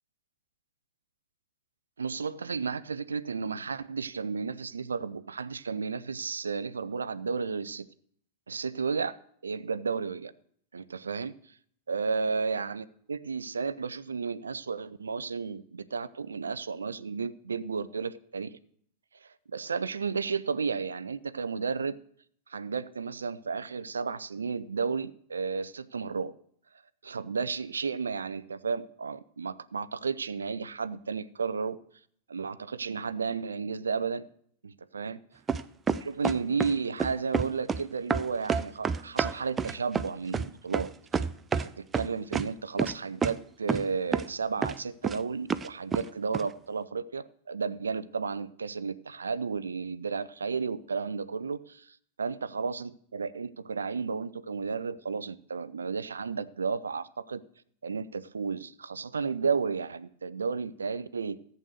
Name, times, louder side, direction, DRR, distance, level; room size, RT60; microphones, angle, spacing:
voice 1, 2.0-7.9 8.5-9.2 9.4-10.3 10.7-11.3 11.9-18.6 19.2-22.0 22.5-26.3 27.0-31.8 32.3-34.3 34.6-35.2 36.0-40.9 41.5-57.4 57.8-61.4, right 5 dB, 75° right, 16 dB, 0.6 m, -33 dB
sound 1, 35.5-36.7 37.0-37.8 38.1-41.7 41.9-42.5 42.8-42.9 43.2-43.3 43.7-43.9 44.1-44.3 44.6-45.2 45.5-46.0 46.3-46.4, right 6 dB, 20° right, 0.5 m, -28 dB
14.5 x 8.0 x 6.4 m, 0.64 s
figure-of-eight pair, 90°, 0 cm